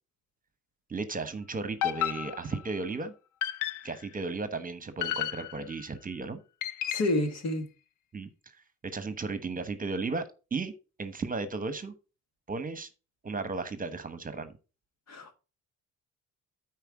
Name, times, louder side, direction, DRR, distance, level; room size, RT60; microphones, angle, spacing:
voice 1, 0.9-3.1 3.8-6.4 8.1-8.3 8.8-10.2 10.5-10.7 11.0-11.9 12.5-12.9 13.2-14.5, right 3 dB, 30° right, 1.1 m, -34 dB
sound 1, 1.8-2.8 3.4-4.1 5.0-5.8 6.6-7.3, left 12 dB, 85° left, 0.6 m, -33 dB
voice 2, 6.9-7.6 15.1-15.4, left 1 dB, 60° left, 1.9 m, -29 dB
9.1 x 4.6 x 4.7 m
cardioid pair, 90°, 30 cm